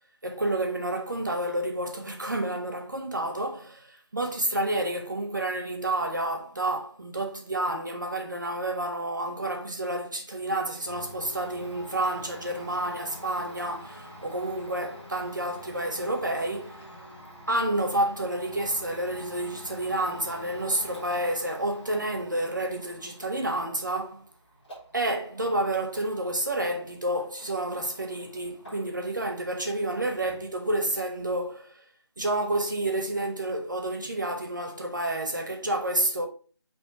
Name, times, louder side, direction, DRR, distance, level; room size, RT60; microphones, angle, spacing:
voice 1, 0.2-16.8 17.5-24.2 24.9-31.8 32.2-36.3, right 1 dB, 40° right, 1.0 m, -29 dB
Domestic sounds home sounds, 10.8-29.2 29.4-30.5, equal, 20° left, 3.4 m, -47 dB
8.6 x 3.1 x 3.6 m
figure-of-eight pair, 175°, 15 cm